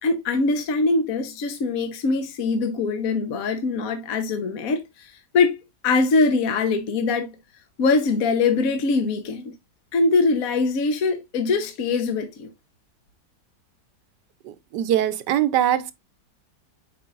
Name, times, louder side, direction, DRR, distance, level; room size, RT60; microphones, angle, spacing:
voice 1, 0.0-5.6 5.8-7.4 7.8-9.5 9.9-12.5, left 3 dB, 55° left, 1.3 m, -22 dB
voice 2, 14.4-15.9, right 11 dB, 80° right, 1.3 m, -22 dB
7.6 x 5.3 x 2.5 m
omnidirectional pair, 1.8 m